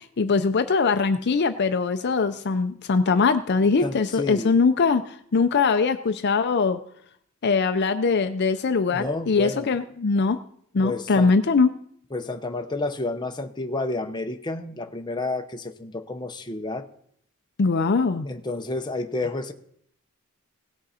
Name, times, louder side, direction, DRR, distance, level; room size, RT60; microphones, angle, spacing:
voice 1, 0.2-5.0 5.3-6.8 7.4-10.4 10.7-11.7 17.6-18.3, left 4 dB, 50° left, 9 dB, 0.5 m, -21 dB
voice 2, 3.8-4.5 8.9-9.7 10.8-11.3 12.1-16.9 18.2-19.5, left 2 dB, 20° left, 5 dB, 0.8 m, -30 dB
17.5 x 6.2 x 4.2 m, 0.66 s
head